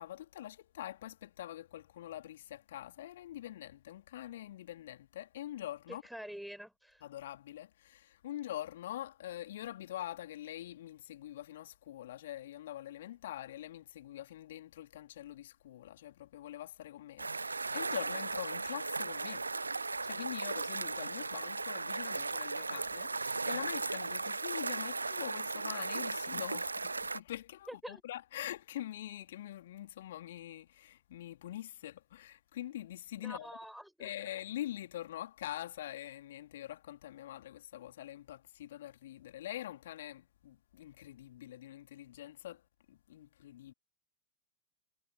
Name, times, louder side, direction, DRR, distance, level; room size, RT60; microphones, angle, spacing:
voice 1, 0.0-6.0 7.0-19.5 19.8-33.5 34.0-42.6 42.9-43.7, left 13 dB, 60° left, 2.2 m, -44 dB
voice 2, 5.9-7.0 27.7-28.0 33.2-34.1, equal, ahead, 4.7 m, -46 dB
sound 1, 17.2-27.2, right 3 dB, 80° right, 0.6 m, -36 dB
figure-of-eight pair, 90°, 0 cm